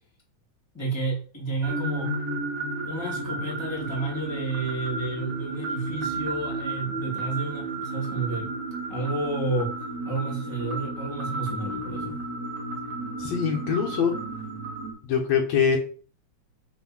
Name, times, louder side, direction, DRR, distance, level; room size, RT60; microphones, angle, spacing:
voice 1, 0.7-2.1 2.8-8.5 8.9-9.7 10.0-12.2, right 3 dB, 10° left, 2.6 m, -31 dB
sound 1, 1.6-14.9, right 2 dB, 50° right, 3.1 m, -32 dB
voice 2, 13.2-14.1 15.0-15.8, left 7 dB, 70° left, 2.4 m, -23 dB
6.5 x 4.5 x 6.2 m
omnidirectional pair, 3.3 m